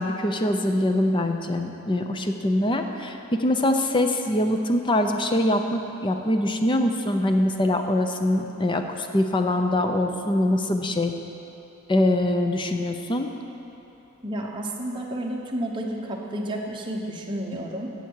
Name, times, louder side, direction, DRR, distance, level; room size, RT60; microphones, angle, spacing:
voice 1, 0.0-11.1 11.9-13.3, left 1 dB, 20° left, 5 dB, 0.6 m, -23 dB
voice 2, 14.2-17.9, right 1 dB, 25° right, -1 dB, 1.0 m, -31 dB
14.0 x 8.0 x 4.7 m, 2.9 s
head